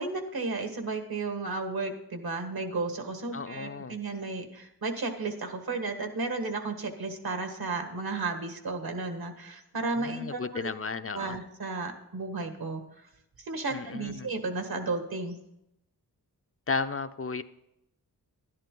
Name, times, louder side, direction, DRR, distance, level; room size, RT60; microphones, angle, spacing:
voice 1, 0.0-10.7 11.1-12.8 13.4-15.4, right 3 dB, 65° right, 6 dB, 1.7 m, -33 dB
voice 2, 3.3-4.0 10.0-11.4 13.7-14.3 16.7-17.4, left 4 dB, 35° left, 9 dB, 0.5 m, -34 dB
11.5 x 10.5 x 3.8 m, 0.82 s
wide cardioid pair, 70°, 38 cm